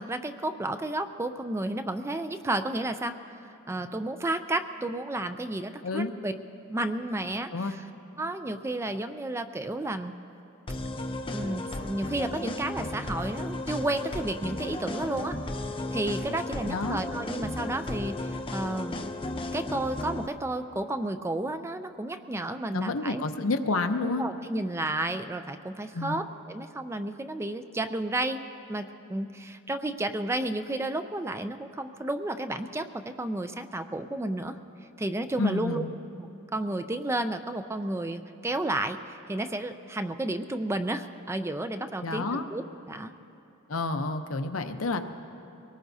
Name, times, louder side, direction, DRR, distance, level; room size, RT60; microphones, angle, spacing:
voice 1, 0.0-3.2 3.7-6.3 6.7-7.5 8.2-10.1 11.3-15.4 15.9-19.1 19.5-23.2 24.2-28.4 28.7-34.6 35.0-35.8 36.2-43.1, right 1 dB, 15° right, 9 dB, 0.4 m, -32 dB
sound 1, 10.7-20.3, left 2 dB, 25° left, 0.6 m, -34 dB
voice 2, 16.7-17.0 22.7-24.2 25.9-26.1 35.4-35.9 42.0-42.4 43.7-45.0, left 3 dB, 75° left, 7 dB, 0.8 m, -29 dB
23.5 x 18.5 x 2.7 m, 2.7 s
head